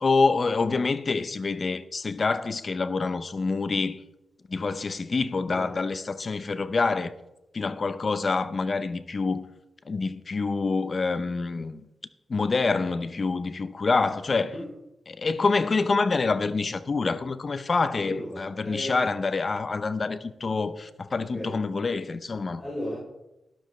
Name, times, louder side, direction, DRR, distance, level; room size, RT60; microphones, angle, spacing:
voice 1, 0.0-4.0 4.5-7.1 7.5-9.4 9.8-11.8 12.3-14.5 15.1-22.6, left 4 dB, 50° left, 0.8 m, -26 dB
voice 2, 18.0-19.0 21.3-21.6 22.6-23.0, left 1 dB, 25° left, 3.6 m, -35 dB
12.5 x 11.5 x 3.3 m
cardioid pair, 55°, 0 cm